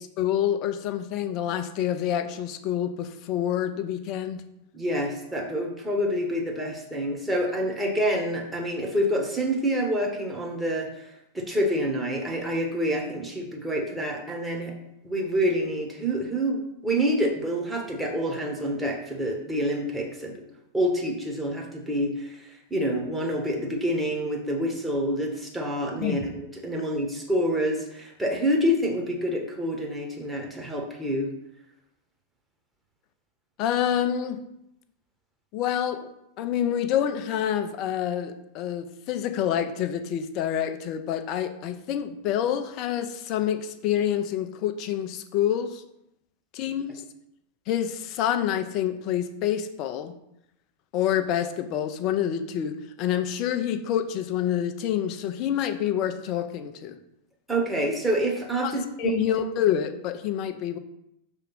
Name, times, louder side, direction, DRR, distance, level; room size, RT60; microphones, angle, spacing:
voice 1, 0.0-4.4 26.0-26.3 33.6-34.4 35.5-36.1 36.4-45.8 46.5-47.0 47.7-50.1 50.9-57.0 58.6-60.8, left 10 dB, 40° left, 9 dB, 0.6 m, -27 dB
voice 2, 4.7-11.1 11.3-14.8 15.0-20.4 20.7-26.3 26.6-31.3 57.5-59.2, equal, 5° right, 0 dB, 1.4 m, -27 dB
6.7 x 3.6 x 5.8 m, 0.81 s
figure-of-eight pair, 90°, 0 cm